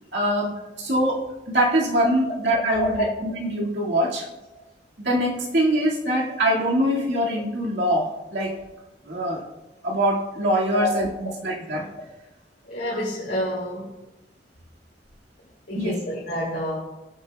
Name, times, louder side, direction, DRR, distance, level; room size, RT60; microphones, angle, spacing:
voice 1, 0.1-4.3 5.0-8.6 9.1-9.4 9.8-11.9 12.9-13.0 15.8-16.0, right 1 dB, 75° right, -3 dB, 2.0 m, -23 dB
voice 2, 2.8-3.1 10.7-10.9 12.6-13.9 15.7-16.8, left 1 dB, 65° left, -9 dB, 2.6 m, -27 dB
17.5 x 7.4 x 2.3 m, 1.0 s
head